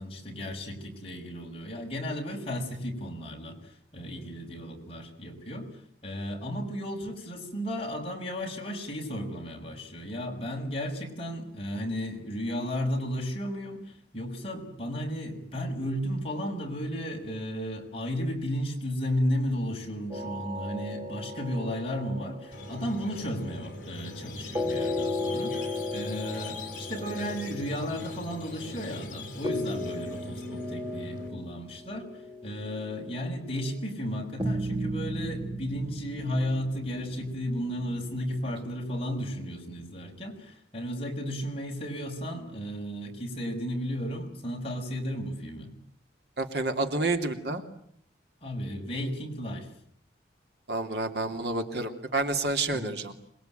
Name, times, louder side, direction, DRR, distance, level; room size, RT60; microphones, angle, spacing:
voice 1, 0.0-5.7 6.0-32.1 32.4-45.7 48.4-49.7 52.7-53.0, equal, 30° left, 1 dB, 6.1 m, -34 dB
sound 1, 20.1-23.7 24.5-33.5 34.4-39.0, left 1 dB, 25° right, 3.2 m, -36 dB
Squeak, 22.5-31.3, left 2 dB, 50° left, 5.9 m, -42 dB
voice 2, 46.4-47.6 50.7-53.1, right 2 dB, 65° right, 5 dB, 3.0 m, -29 dB
27.0 x 22.0 x 9.3 m, 0.67 s
head